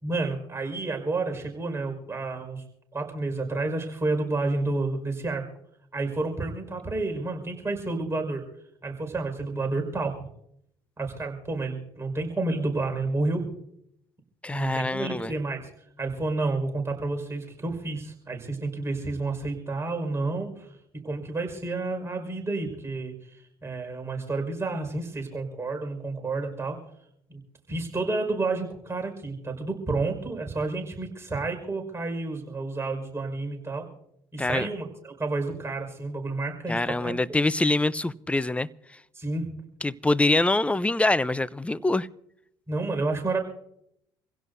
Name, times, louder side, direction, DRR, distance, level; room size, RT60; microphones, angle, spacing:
voice 1, 0.0-2.6 2.9-5.4 5.9-8.4 8.8-10.2 11.0-13.5 14.5-15.7 16.0-20.7 21.0-26.8 27.3-27.4 27.7-33.9 34.3-37.1 39.1-39.5 42.7-43.4, right 3 dB, 20° right, 5.3 m, -30 dB
voice 2, 14.4-15.3 34.4-34.7 36.7-38.7 39.8-42.1, left 2 dB, 10° left, 0.6 m, -24 dB
27.5 x 16.5 x 2.7 m
hypercardioid pair, 65°, 12 cm